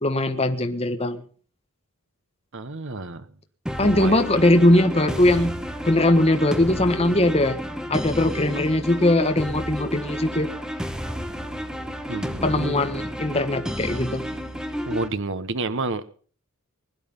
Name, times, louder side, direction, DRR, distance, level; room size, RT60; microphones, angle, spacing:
voice 1, 0.0-1.2 3.8-5.5 5.8-7.6 7.9-10.5 12.4-14.2, left 1 dB, 30° left, 6 dB, 1.5 m, -20 dB
voice 2, 2.5-3.3 3.8-4.3 12.1-12.8 14.9-16.1, right 3 dB, 60° right, 12 dB, 1.2 m, -30 dB
sound 1, 3.7-15.1, equal, 5° right, 1.5 m, -31 dB
21.5 x 11.0 x 5.5 m, 0.42 s
head